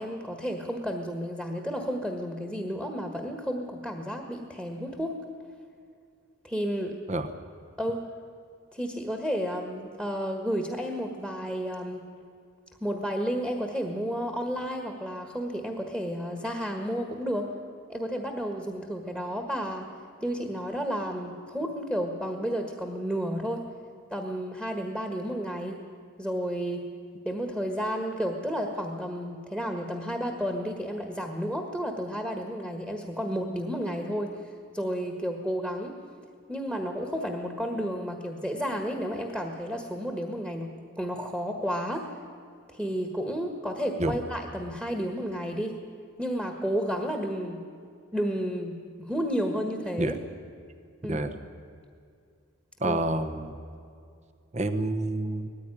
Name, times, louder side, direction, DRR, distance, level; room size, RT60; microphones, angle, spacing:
voice 1, 0.0-5.1 6.4-6.9 7.8-8.0 8.7-12.0 12.8-17.5 17.9-19.9 20.2-23.6 24.1-25.7 26.2-26.8 27.2-35.9 36.5-40.7 41.0-42.1 42.7-45.7 46.2-47.6 48.1-50.1 51.0-51.2 52.8-53.0, equal, 5° right, 4 dB, 1.6 m, -31 dB
voice 2, 51.0-51.3 52.8-53.5 54.5-55.5, right 2 dB, 35° right, 8 dB, 1.0 m, -28 dB
19.5 x 15.0 x 10.0 m, 2.4 s
head